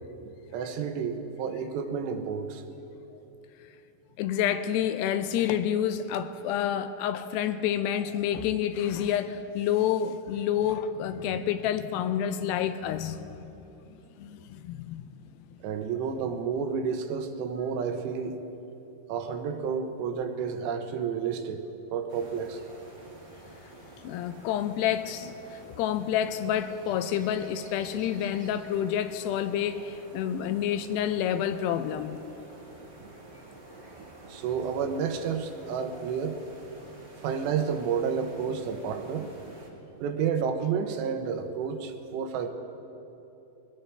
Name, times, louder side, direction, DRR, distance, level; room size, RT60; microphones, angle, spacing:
voice 1, 0.2-2.6 15.6-18.4 19.1-22.6 30.2-30.3 33.0-33.1 33.5-33.6 34.0-36.4 37.2-39.6 39.9-42.5, right 6 dB, 85° right, 6 dB, 3.1 m, -31 dB
voice 2, 4.2-13.5 14.2-15.1 24.0-32.2, left 9 dB, 85° left, 11 dB, 2.6 m, -29 dB
sound 1, 22.1-39.7, right 1 dB, 65° right, 0.4 m, -49 dB
22.0 x 18.0 x 3.4 m, 2.9 s
omnidirectional pair, 4.9 m